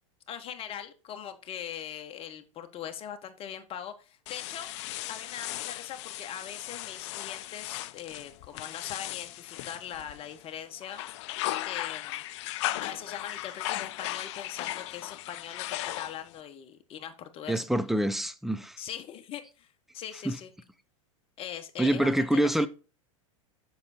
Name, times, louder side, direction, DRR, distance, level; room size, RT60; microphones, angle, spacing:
voice 1, 0.3-4.7 5.1-11.0 11.6-12.2 12.8-17.6 18.8-19.7 19.9-20.5 21.4-22.6, left 9 dB, 35° left, 1.4 m, -41 dB
sound 1, 4.3-10.4 10.8-16.4, left 16 dB, 55° left, 0.5 m, -37 dB
voice 2, 17.5-18.8 20.3-20.4 21.8-22.7, right 1 dB, ahead, 0.6 m, -26 dB
7.5 x 6.2 x 4.3 m
hypercardioid pair, 100°, 17 cm